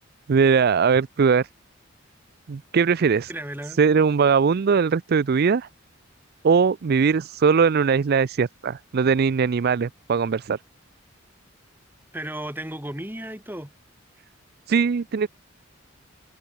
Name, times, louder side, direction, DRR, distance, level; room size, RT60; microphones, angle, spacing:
voice 1, 0.3-1.5 2.5-3.3 3.8-5.7 6.4-10.6 14.7-15.3, right 5 dB, 50° right, 0.4 m, -20 dB
voice 2, 3.3-3.8 12.1-13.7, right 1 dB, 10° right, 5.6 m, -34 dB
head